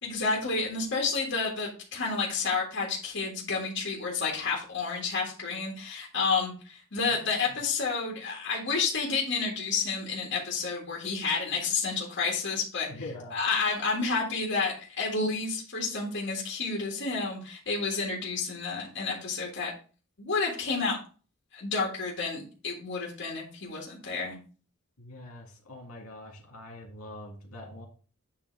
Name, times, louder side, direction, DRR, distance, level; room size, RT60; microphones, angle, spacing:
voice 1, 0.0-12.9 13.3-19.7 20.2-21.0 21.5-24.4, left 4 dB, 55° left, -2 dB, 1.8 m, -30 dB
voice 2, 12.9-13.4 25.0-27.9, left 1 dB, 80° left, 0 dB, 2.1 m, -44 dB
8.6 x 3.0 x 4.5 m, 0.38 s
head